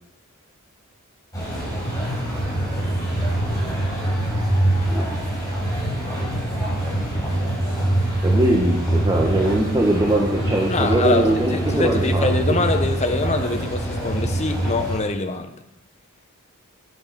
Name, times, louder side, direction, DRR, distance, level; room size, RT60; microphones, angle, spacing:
sound 1, 1.3-15.0, right 1 dB, 15° left, 4.9 m, -24 dB
voice 1, 8.2-12.3, right 1 dB, 20° right, -2 dB, 1.4 m, -21 dB
voice 2, 10.7-15.5, left 3 dB, 30° left, 7 dB, 1.0 m, -24 dB
11.5 x 8.2 x 5.9 m, 0.85 s
head